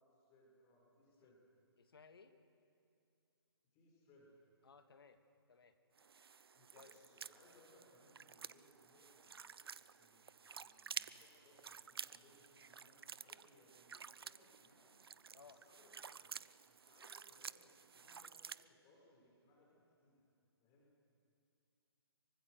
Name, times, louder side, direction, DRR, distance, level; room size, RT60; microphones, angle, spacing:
voice 1, 0.1-1.4 3.7-4.3 6.5-15.0 15.4-16.3 16.7-20.2 20.6-20.9, left 1 dB, 25° left, -2 dB, 5.9 m, -69 dB
voice 2, 1.8-2.4 4.6-5.2 5.5-5.8 6.7-6.9 15.3-15.6, left 5 dB, 65° left, 8 dB, 1.9 m, -61 dB
sound 1, 6.0-18.6, right 6 dB, 65° right, 0.6 m, -52 dB
25.0 x 24.0 x 6.6 m, 2.5 s
figure-of-eight pair, 135°, 14 cm